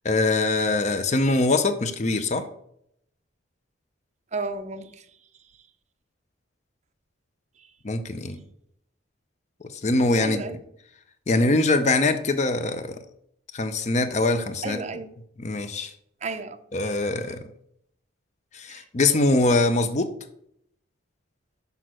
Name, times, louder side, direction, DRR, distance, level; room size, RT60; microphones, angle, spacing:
voice 1, 0.0-2.4 7.8-8.4 9.8-10.4 11.3-13.0 13.5-14.8 15.4-15.9 16.7-17.4 18.5-20.1, left 2 dB, 35° left, 0.5 m, -23 dB
voice 2, 4.3-5.0 10.2-10.6 14.6-15.1 16.2-16.6 18.7-18.8, right 3 dB, 35° right, 0.6 m, -32 dB
6.1 x 5.5 x 6.2 m
head